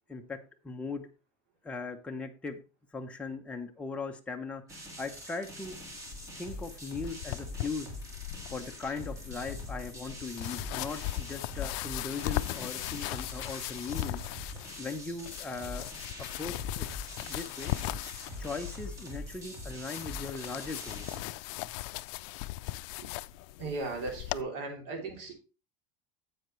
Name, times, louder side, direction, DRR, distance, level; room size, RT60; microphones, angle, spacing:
voice 1, 0.1-1.1 1.6-2.6 2.9-5.8 6.3-7.9 8.5-14.3 14.8-15.9 16.2-16.9 17.3-17.7 18.4-21.1 21.6-21.7, left 4 dB, 5° left, 2 dB, 0.7 m, -39 dB
sound 1, 4.7-21.2, equal, 20° right, 1.8 m, -44 dB
sound 2, 5.6-24.4, left 18 dB, 65° left, 0.4 m, -39 dB
voice 2, 23.6-25.3, right 3 dB, 65° right, 3 dB, 3.0 m, -37 dB
9.9 x 7.8 x 3.1 m, 0.32 s
cardioid pair, 170°, 17 cm